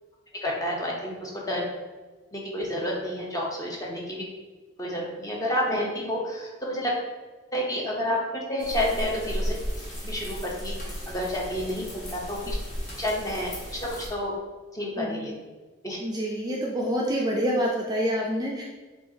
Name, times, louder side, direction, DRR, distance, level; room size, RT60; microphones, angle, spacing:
voice 1, 0.4-1.6 2.3-4.2 4.8-7.0 7.5-9.6 10.0-10.7 11.1-12.6 13.0-14.4 14.7-15.3 15.8-16.0, equal, 15° left, -2 dB, 0.6 m, -30 dB
sound 1, 8.6-14.1, equal, 40° left, 1.4 m, -34 dB
voice 2, 16.0-18.6, equal, 20° right, -2 dB, 0.3 m, -27 dB
5.6 x 2.4 x 2.7 m, 1.3 s
head